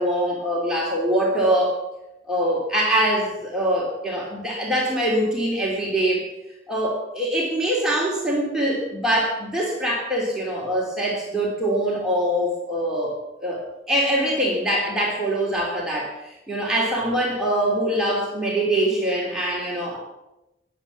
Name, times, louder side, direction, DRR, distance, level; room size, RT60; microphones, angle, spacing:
voice 1, 0.0-1.8 2.3-6.3 6.7-13.1 13.4-20.0, right 1 dB, 5° right, -4 dB, 2.9 m, -23 dB
20.0 x 8.2 x 7.1 m, 0.94 s
head